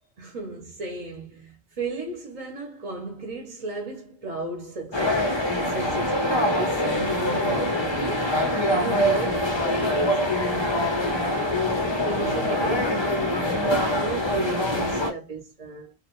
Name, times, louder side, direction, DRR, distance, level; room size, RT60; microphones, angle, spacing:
voice 1, 0.2-8.3 8.7-10.9 12.0-15.9, right 3 dB, 40° right, 0.6 m, -35 dB
sound 1, 4.9-15.1, left 1 dB, 40° left, 0.4 m, -24 dB
2.4 x 2.2 x 2.9 m
omnidirectional pair, 1.2 m